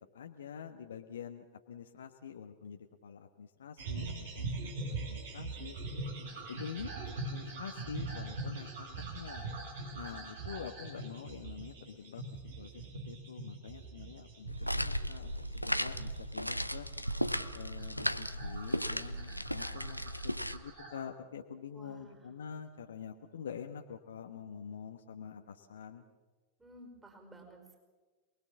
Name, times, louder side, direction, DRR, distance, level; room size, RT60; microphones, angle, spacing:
voice 1, 0.1-4.7 5.1-5.7 6.5-6.9 7.3-9.5 9.9-12.2 12.6-16.9 17.5-26.0, left 7 dB, 65° left, 4 dB, 1.2 m, -46 dB
sound 1, 3.8-21.0, right 3 dB, 60° right, 7.8 m, -43 dB
sound 2, 14.5-20.6, equal, 90° left, 0.8 m, -36 dB
voice 2, 21.7-22.3 26.6-27.8, right 1 dB, 10° right, 3 dB, 4.9 m, -54 dB
27.5 x 20.5 x 7.3 m, 1.3 s
figure-of-eight pair, 90°, 0 cm